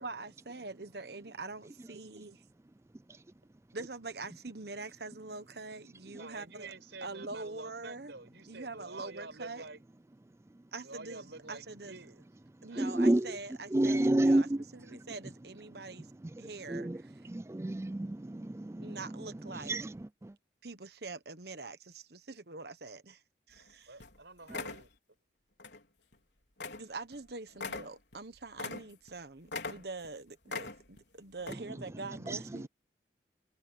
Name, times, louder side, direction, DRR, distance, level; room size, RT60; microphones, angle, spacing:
voice 1, 0.0-2.3 3.7-6.7 7.0-8.1 8.5-9.6 10.7-12.0 12.6-16.1 16.4-17.1 18.8-19.7 20.6-23.2 23.5-23.9 26.8-32.7, right 3 dB, 60° right, 1.3 m, -44 dB
voice 2, 6.1-9.8 10.8-12.2 12.6-13.2 23.9-24.9, right 3 dB, 80° right, 5.0 m, -48 dB
voice 3, 12.8-13.2 13.7-14.6 16.7-17.0 17.3-19.0 19.7-19.9, right 1 dB, 15° right, 0.3 m, -28 dB
sound 1, 23.6-23.7 24.0-24.2 24.5-24.9 25.6-25.8 26.1-26.2 26.6-26.9 27.1-27.2 27.5-29.2 29.5-30.1 30.5-31.0 31.4-31.5, left 3 dB, 70° left, 4.2 m, -41 dB
head